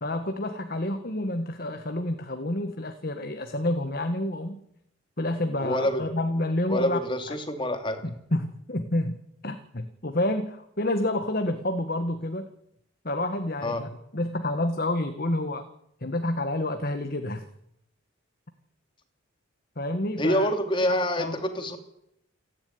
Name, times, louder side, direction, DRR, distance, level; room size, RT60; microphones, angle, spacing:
voice 1, 0.0-4.6 5.2-7.0 7.3-7.4 8.0-9.2 9.4-12.5 13.0-15.6 16.0-17.4 19.8-20.5 21.2-21.4, left 1 dB, 45° left, 7 dB, 1.5 m, -29 dB
voice 2, 5.6-6.0 6.7-8.0 13.6-13.8 20.2-21.8, equal, 25° left, 6 dB, 2.7 m, -26 dB
28.5 x 11.5 x 9.5 m, 0.78 s
head